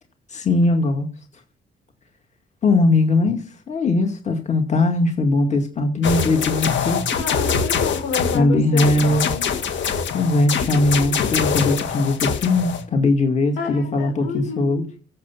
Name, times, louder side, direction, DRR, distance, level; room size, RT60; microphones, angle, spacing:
voice 1, 0.3-1.1 2.6-7.1 8.3-9.3 10.1-14.8, left 2 dB, 35° left, 2.1 m, -20 dB
sound 1, 6.0-8.4 8.8-12.8, left 6 dB, 65° left, 1.9 m, -24 dB
voice 2, 7.2-9.4 13.6-14.9, left 5 dB, 90° left, 5.3 m, -29 dB
14.0 x 7.3 x 5.7 m
cardioid pair, 90°, 20 cm